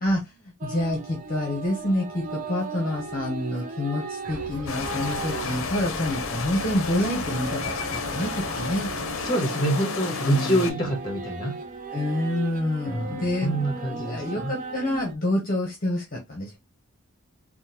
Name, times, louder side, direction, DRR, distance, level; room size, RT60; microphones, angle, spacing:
voice 1, 0.0-8.9 10.2-10.7 11.9-16.6, left 1 dB, 40° left, 0.8 m, -28 dB
sound 1, 0.6-15.2, right 4 dB, 35° right, 0.4 m, -37 dB
sound 2, 4.2-9.3, right 1 dB, 60° right, 0.8 m, -39 dB
sound 3, 4.7-10.7, left 5 dB, 70° left, 0.5 m, -32 dB
voice 2, 9.2-11.6 12.9-14.5, right 1 dB, 20° left, 1.0 m, -26 dB
3.5 x 2.1 x 2.8 m
head